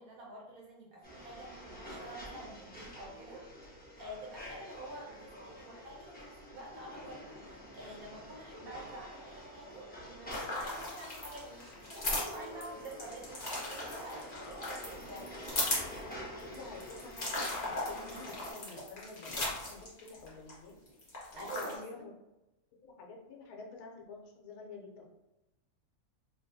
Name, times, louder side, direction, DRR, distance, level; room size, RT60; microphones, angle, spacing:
voice 1, 0.0-3.4 4.0-15.6 21.4-22.0, right 1 dB, 70° right, -3 dB, 1.3 m, -48 dB
sound 1, 1.0-18.5, equal, 10° left, 0.4 m, -48 dB
sound 2, 10.3-20.5 20.9-21.7, left 2 dB, 35° left, 0.8 m, -38 dB
voice 2, 16.4-20.7 21.3-22.1 22.8-25.1, left 4 dB, 80° left, 0 dB, 1.1 m, -49 dB
3.4 x 2.3 x 2.6 m, 0.97 s
omnidirectional pair, 1.6 m